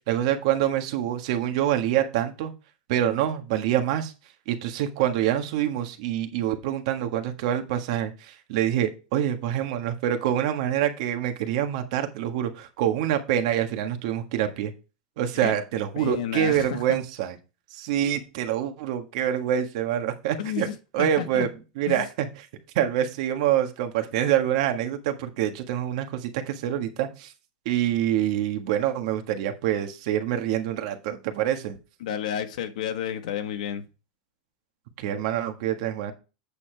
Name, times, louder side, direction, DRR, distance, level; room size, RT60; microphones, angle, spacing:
voice 1, 0.1-2.5 2.9-4.1 4.5-14.7 15.2-17.4 17.7-20.7 20.9-21.5 21.8-22.3 22.7-27.3 27.6-31.8 35.0-36.1, right 11 dB, 55° right, 1.5 m, -26 dB
voice 2, 16.0-16.8 20.4-21.4 21.9-22.0 32.0-33.8, left 9 dB, 80° left, 1.4 m, -31 dB
8.6 x 7.0 x 3.4 m
supercardioid pair, 160°, 4 cm